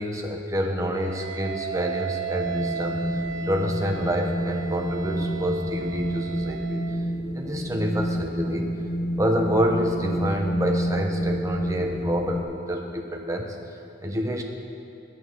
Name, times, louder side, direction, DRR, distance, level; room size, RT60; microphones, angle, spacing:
voice 1, 0.0-7.0 7.3-8.7 9.2-14.4, equal, 15° right, 2 dB, 0.8 m, -28 dB
Wind instrument woodwind instrument, 0.9-7.0, right 7 dB, 75° right, 0.7 m, -35 dB
Wind, 2.4-12.4, equal, 30° left, 0.8 m, -29 dB
10.5 x 8.9 x 6.3 m, 2.6 s
head